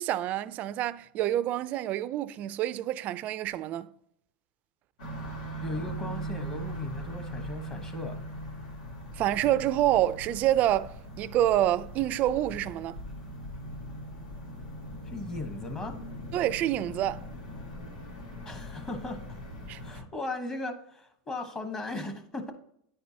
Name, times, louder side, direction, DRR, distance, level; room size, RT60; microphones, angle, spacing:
voice 1, 0.0-3.9 9.2-13.0 16.3-17.2 19.7-19.8, right 13 dB, 40° right, 0.3 m, -27 dB
sound 1, 5.0-20.0, right 1 dB, 85° left, 2.5 m, -40 dB
voice 2, 5.6-8.2 15.0-16.0 18.4-19.2 19.8-22.5, left 2 dB, 15° left, 1.0 m, -37 dB
9.8 x 4.5 x 2.7 m
supercardioid pair, 135°, 4 cm